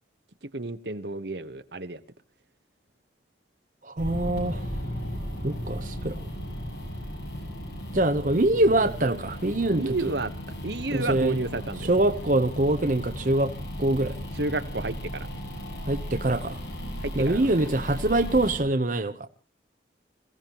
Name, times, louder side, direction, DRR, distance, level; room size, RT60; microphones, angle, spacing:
voice 1, 0.5-2.0 4.2-4.3 9.7-10.3 10.6-12.1 14.3-15.3 17.0-17.5, right 2 dB, 70° right, 1.1 m, -31 dB
voice 2, 3.8-4.7 5.4-6.2 7.9-10.0 10.9-11.4 11.8-13.5 13.8-14.1 15.9-16.6 17.1-19.3, right 1 dB, 50° right, 0.9 m, -24 dB
sound 1, 4.0-18.6, equal, 70° left, 7.6 m, -36 dB
27.5 x 16.5 x 3.0 m
head